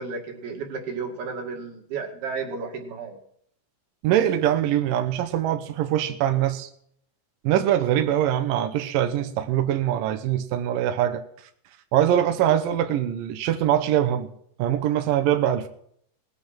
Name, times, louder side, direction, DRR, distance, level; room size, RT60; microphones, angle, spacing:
voice 1, 0.0-3.2, right 5 dB, 60° right, 3 dB, 3.7 m, -33 dB
voice 2, 4.0-6.7 7.4-11.2 11.9-14.3 14.6-15.7, right 11 dB, 80° right, 7 dB, 2.0 m, -23 dB
19.5 x 9.0 x 5.9 m, 0.67 s
omnidirectional pair, 5.4 m